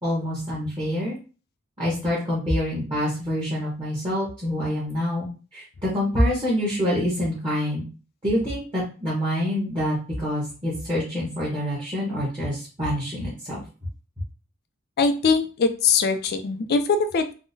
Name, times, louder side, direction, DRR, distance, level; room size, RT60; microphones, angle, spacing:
voice 1, 0.0-1.2 1.8-7.8 8.2-13.6, equal, 20° right, -7 dB, 0.9 m, -26 dB
voice 2, 15.0-17.3, left 4 dB, 45° left, 8 dB, 0.4 m, -22 dB
3.7 x 2.0 x 2.6 m, 0.35 s
head